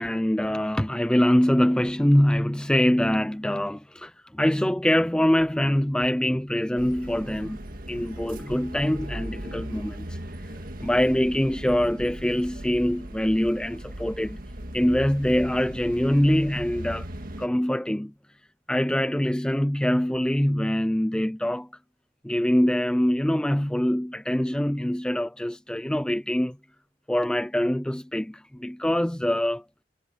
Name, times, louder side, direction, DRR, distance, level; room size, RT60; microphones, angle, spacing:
voice 1, 0.0-7.6 7.9-10.2 10.4-10.5 10.8-14.4 14.7-17.1 17.4-18.1 18.7-21.7 22.2-26.6 27.1-29.6, equal, 5° left, 0.4 m, -24 dB
sound 1, 6.8-17.5, right 1 dB, 50° right, 1.9 m, -38 dB
head